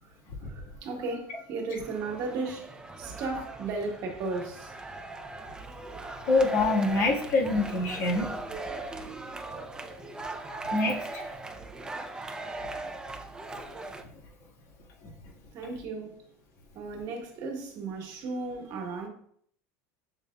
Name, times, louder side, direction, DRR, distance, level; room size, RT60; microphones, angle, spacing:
voice 1, 0.0-5.3 9.7-9.9 11.6-11.7 15.5-16.1 16.7-19.1, right 3 dB, 50° right, 1.2 m, -36 dB
sound 1, 1.8-14.0, right 2 dB, 10° right, 0.4 m, -39 dB
voice 2, 6.2-8.3 10.7-11.2, left 3 dB, 70° left, 1.5 m, -25 dB
6.7 x 3.3 x 2.2 m
supercardioid pair, 135°, 8 cm